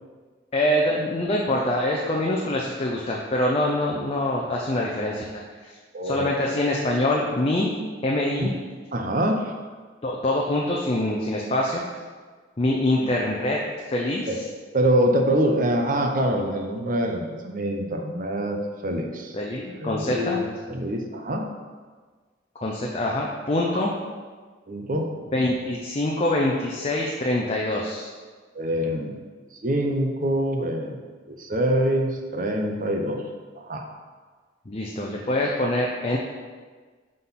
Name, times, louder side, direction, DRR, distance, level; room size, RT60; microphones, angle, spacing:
voice 1, 0.5-5.8 6.0-7.7 8.0-8.5 10.0-11.8 12.6-13.6 13.9-14.4 19.3-20.4 22.6-23.9 25.3-28.1 34.7-36.2, left 1 dB, 35° left, -2 dB, 0.6 m, -25 dB
voice 2, 5.9-6.3 8.4-8.5 8.9-9.5 14.3-14.4 14.7-19.4 19.8-21.4 23.7-23.8 24.7-25.1 28.5-29.1 29.6-31.0 31.3-33.2 33.6-33.8, right 1 dB, 45° right, 2 dB, 0.8 m, -25 dB
5.8 x 3.8 x 5.8 m, 1.5 s
head